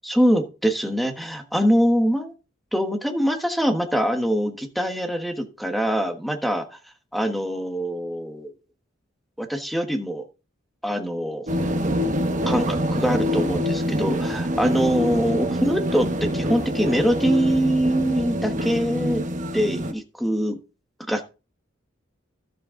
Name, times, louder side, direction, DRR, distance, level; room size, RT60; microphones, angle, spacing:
voice 1, 0.0-2.3 2.7-6.6 7.1-8.5 9.4-10.3 10.8-11.5 12.5-19.2 19.5-20.6 21.1-21.3, equal, ahead, 6 dB, 1.4 m, -23 dB
sound 1, 11.5-19.9, equal, 40° right, 1.1 m, -25 dB
13.0 x 7.7 x 3.8 m, 0.31 s
head